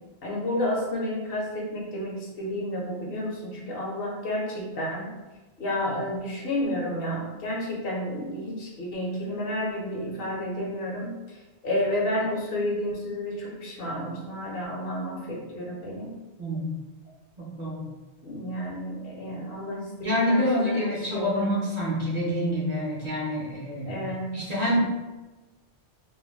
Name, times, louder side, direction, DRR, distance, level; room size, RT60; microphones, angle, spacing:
voice 1, 0.2-5.1 5.6-16.1 18.2-21.6 23.9-24.3, left 1 dB, 65° left, -3 dB, 0.8 m, -31 dB
voice 2, 16.4-16.7 17.6-17.8 20.0-24.0 24.3-24.8, equal, 45° right, -7 dB, 0.6 m, -27 dB
2.3 x 2.1 x 3.2 m, 1.2 s
omnidirectional pair, 1.2 m